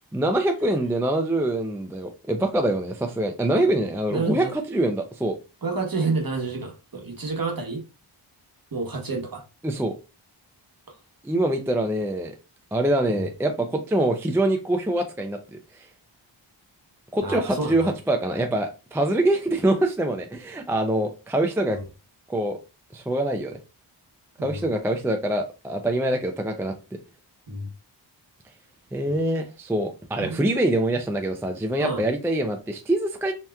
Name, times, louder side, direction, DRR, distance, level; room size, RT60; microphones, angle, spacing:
voice 1, 0.1-5.4 9.6-9.9 11.2-12.3 12.7-15.9 17.1-21.8 22.3-22.6 22.9-23.6 24.4-26.7 28.9-33.3, right 1 dB, 5° right, 0.4 m, -24 dB
voice 2, 4.1-4.5 5.6-7.8 8.7-9.4 13.1-13.2 17.2-17.9 21.7-21.8 24.4-24.6 27.5-27.7 29.1-29.2 30.2-30.4 31.8-32.0, right 3 dB, 45° right, 1.1 m, -29 dB
3.3 x 2.9 x 2.2 m
wide cardioid pair, 55°, 49 cm